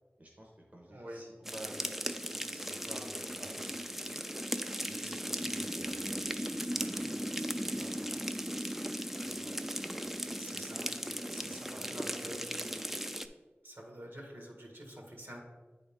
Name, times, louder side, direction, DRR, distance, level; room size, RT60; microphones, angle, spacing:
voice 1, 0.2-4.3 4.9-8.4 8.8-9.5 9.8-10.5 11.3-11.8 12.7-12.8, right 1 dB, 40° right, -2 dB, 0.9 m, -52 dB
voice 2, 0.9-1.2 10.4-10.9 11.3-12.4 13.6-15.4, equal, 70° right, 0 dB, 1.6 m, -47 dB
sound 1, 1.4-13.3, equal, 5° right, 0.4 m, -37 dB
8.6 x 3.9 x 3.6 m, 1.3 s
wide cardioid pair, 50°, 4 cm